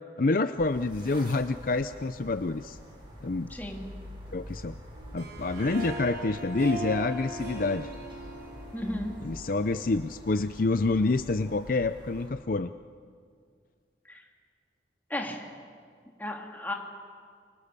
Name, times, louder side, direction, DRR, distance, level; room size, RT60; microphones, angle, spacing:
voice 1, 0.2-2.8 3.2-3.5 4.3-4.8 5.1-7.9 9.2-12.7, left 3 dB, 50° left, 11 dB, 0.6 m, -27 dB
sound 1, 0.6-12.3, equal, 30° right, 7.4 m, -46 dB
voice 2, 3.5-3.8 8.7-9.1 14.1-14.2 15.1-15.4 16.2-16.7, left 1 dB, 10° left, 0 dB, 3.0 m, -34 dB
Harp, 5.0-10.2, right 1 dB, 60° right, 4.3 m, -40 dB
29.5 x 24.5 x 6.9 m, 2.1 s
head